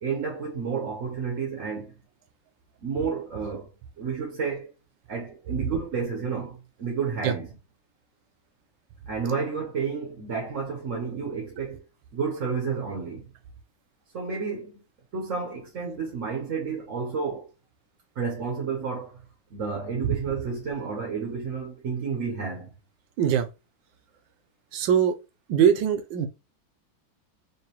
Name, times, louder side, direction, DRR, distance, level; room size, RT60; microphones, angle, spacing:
voice 1, 0.0-2.0 2.8-3.7 4.0-4.7 5.1-7.5 9.1-11.8 12.1-13.3 14.1-14.8 15.1-17.5 18.1-19.2 19.5-22.7, right 5 dB, 50° right, 1.0 m, -31 dB
voice 2, 23.2-23.5 24.7-25.2 25.5-26.3, right 8 dB, 70° right, 1.4 m, -21 dB
4.8 x 2.6 x 3.0 m
omnidirectional pair, 2.2 m